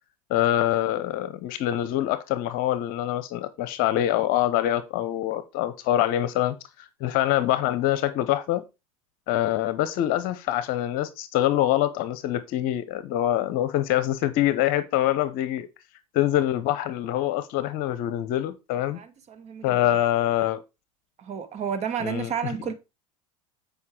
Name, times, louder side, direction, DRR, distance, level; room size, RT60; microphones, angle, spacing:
voice 1, 0.3-8.6 9.3-15.7 16.1-19.0 19.6-20.6 22.0-22.3, left 13 dB, 50° left, 0.9 m, -25 dB
voice 2, 18.9-19.9 21.2-22.7, right 7 dB, 35° right, 1.9 m, -31 dB
8.3 x 5.1 x 4.9 m
hypercardioid pair, 85°, 18 cm